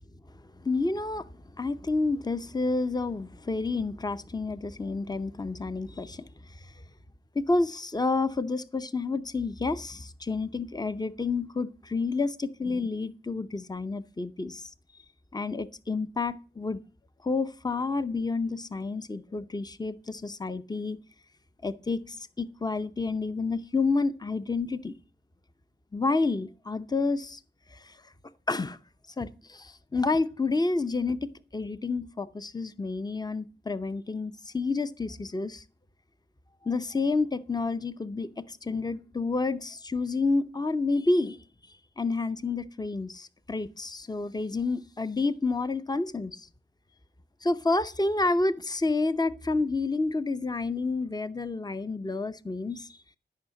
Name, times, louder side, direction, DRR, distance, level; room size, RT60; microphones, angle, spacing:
voice 1, 0.6-6.7 7.3-14.7 15.3-16.8 17.2-21.0 21.6-25.0 25.9-27.4 27.7-28.1 28.5-28.8 29.2-35.6 36.6-41.4 42.0-46.5 47.4-53.0, left 3 dB, 20° left, 0.7 m, -29 dB
12.5 x 5.7 x 7.7 m
cardioid pair, 50°, 20 cm